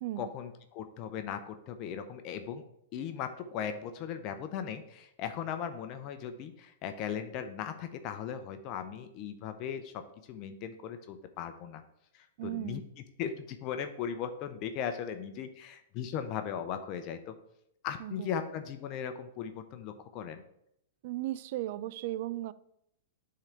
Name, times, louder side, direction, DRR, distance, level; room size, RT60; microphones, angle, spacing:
voice 1, 0.2-2.6 2.9-9.9 10.3-11.8 12.1-12.8 13.2-17.3 17.8-20.4, left 8 dB, 40° left, 0.7 m, -38 dB
voice 2, 12.4-12.8 18.0-18.3 21.0-22.5, right 15 dB, 55° right, 0.4 m, -36 dB
8.7 x 3.8 x 4.4 m
hypercardioid pair, 115°, 0 cm